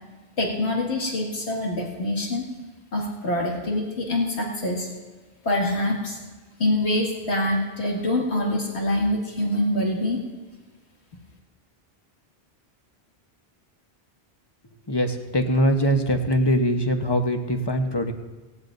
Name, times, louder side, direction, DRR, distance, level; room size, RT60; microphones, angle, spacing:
voice 1, 0.4-2.5 2.9-4.9 5.4-6.2 6.6-10.2, left 1 dB, 80° left, -1 dB, 2.4 m, -25 dB
voice 2, 14.9-18.1, equal, 25° left, 5 dB, 1.0 m, -22 dB
18.0 x 17.5 x 2.7 m, 1.3 s
omnidirectional pair, 1.1 m